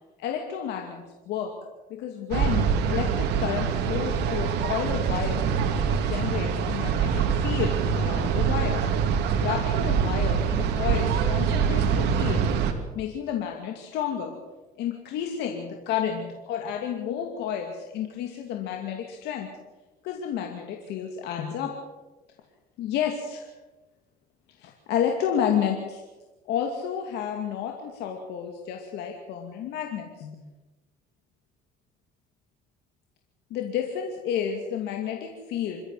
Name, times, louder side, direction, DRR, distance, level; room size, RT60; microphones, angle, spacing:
voice 1, 0.2-1.5 1.9-5.5 5.9-8.8 9.4-12.4 12.9-14.4 14.8-19.5 20.0-21.7 22.8-23.5 24.6-26.0 26.5-30.4 33.5-35.8, left 8 dB, 85° left, 2 dB, 2.5 m, -31 dB
sound 1, 2.3-12.7, right 7 dB, 85° right, 2.5 m, -24 dB
26.5 x 13.5 x 7.8 m, 1.1 s
cardioid pair, 110°, 17 cm